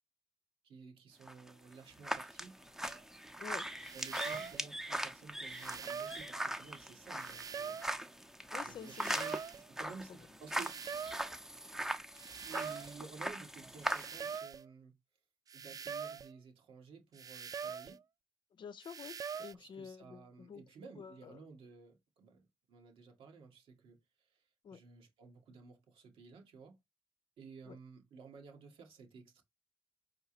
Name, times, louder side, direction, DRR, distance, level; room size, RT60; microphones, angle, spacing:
voice 1, 0.6-2.6 3.9-7.8 8.6-9.4 9.7-10.8 12.4-14.9 15.5-18.0 19.5-24.0 24.3-24.4 24.7-26.8 27.4-29.4, right 5 dB, 70° right, 1.7 m, -54 dB
sound 1, 1.2-14.4, right 1 dB, 5° right, 0.8 m, -41 dB
sound 2, 2.8-3.0 3.8-4.7 5.5-6.3 7.2-8.0 8.8-9.7 10.5-11.3 12.2-13.0 13.8-14.7 15.5-16.3 17.2-18.0 18.8-19.5, right 6 dB, 40° right, 0.4 m, -43 dB
voice 2, 3.4-3.7 4.4-4.5 4.9-5.0 8.5-9.2 9.8-9.9 18.5-20.6 21.0-21.4 24.6-24.8 27.7-27.8, left 7 dB, 55° left, 0.7 m, -49 dB
4.8 x 3.5 x 2.9 m
supercardioid pair, 70°, 10 cm